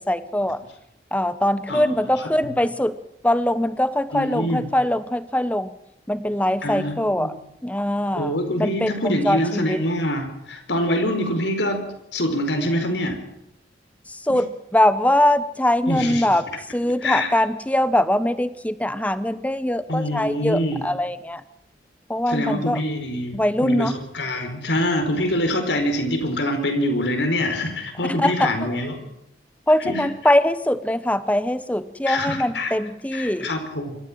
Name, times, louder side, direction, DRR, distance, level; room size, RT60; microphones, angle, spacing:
voice 1, 0.1-0.6 1.1-3.0 3.2-5.7 6.1-7.3 7.6-9.8 14.1-14.5 14.7-16.5 16.7-21.4 22.1-22.8 23.3-23.9 28.1-28.7 29.7-33.5, left 1 dB, 10° left, 13 dB, 1.0 m, -22 dB
voice 2, 1.7-2.0 2.4-2.5 4.1-4.7 6.6-7.3 8.1-11.8 12.1-13.2 15.9-16.3 17.0-17.3 19.9-20.8 22.3-29.0 29.8-30.0 32.1-32.7 33.1-34.0, left 1 dB, 80° left, 5 dB, 5.0 m, -25 dB
26.0 x 14.0 x 7.7 m, 0.80 s
head